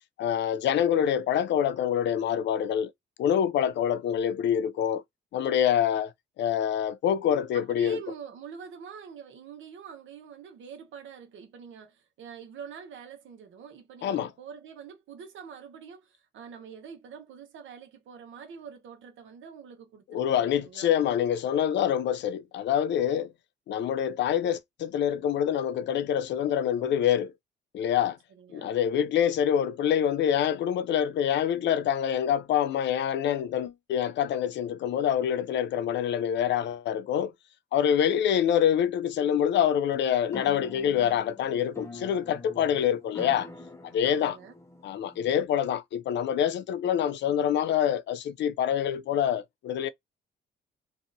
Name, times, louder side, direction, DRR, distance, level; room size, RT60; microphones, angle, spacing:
voice 1, 0.2-2.9 3.2-5.0 5.3-8.0 14.0-14.3 20.1-23.3 23.7-27.3 27.7-28.2 28.5-37.3 37.7-43.5 43.9-44.4 44.8-49.9, left 9 dB, 65° left, 0.4 m, -26 dB
voice 2, 7.5-20.9 28.3-28.7 44.0-44.6, right 7 dB, 75° right, 1.0 m, -45 dB
sound 1, 40.2-45.5, left 2 dB, 15° left, 0.7 m, -45 dB
2.7 x 2.5 x 2.6 m
cardioid pair, 90°, 20 cm